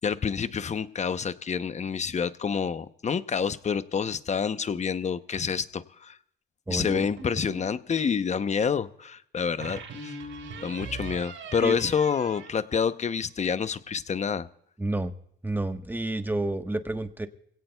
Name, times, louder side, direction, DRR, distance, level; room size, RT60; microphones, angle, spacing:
voice 1, 0.0-6.2 6.7-10.2 10.6-14.5, left 6 dB, 35° left, 12 dB, 0.8 m, -28 dB
voice 2, 6.7-7.1 11.6-11.8 14.8-15.1 15.4-17.3, right 2 dB, 10° right, 7 dB, 1.3 m, -29 dB
sound 1, 6.9-7.8 9.6-13.4, right 3 dB, 80° right, 5.5 m, -41 dB
24.0 x 17.0 x 2.3 m, 0.69 s
cardioid pair, 90°, 20 cm